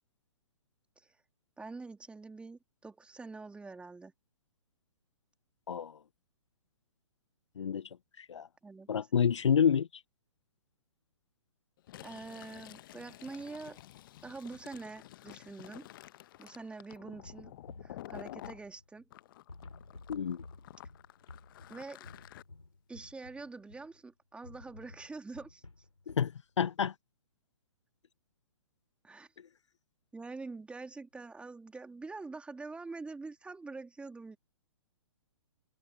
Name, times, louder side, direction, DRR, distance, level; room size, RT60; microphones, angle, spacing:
voice 1, 1.6-4.1 8.6-8.9 12.0-13.8 14.2-15.9 16.4-17.5 17.8-19.1 21.7-22.1 22.9-25.6 29.0-29.3 30.1-34.4, right 3 dB, 5° right, 2.2 m, -45 dB
voice 2, 5.7-6.0 7.6-7.9 8.2-8.5 8.9-10.0 20.1-20.4 26.1-26.3 26.6-26.9, left 7 dB, 70° left, 0.6 m, -28 dB
Fill (with liquid), 11.8-18.6 19.1-22.4, left 14 dB, 45° left, 1.0 m, -51 dB
sound 1, 17.2-19.2 19.5-24.0 24.4-26.4, left 3 dB, 85° left, 2.7 m, -53 dB
open air
figure-of-eight pair, 125°, 16 cm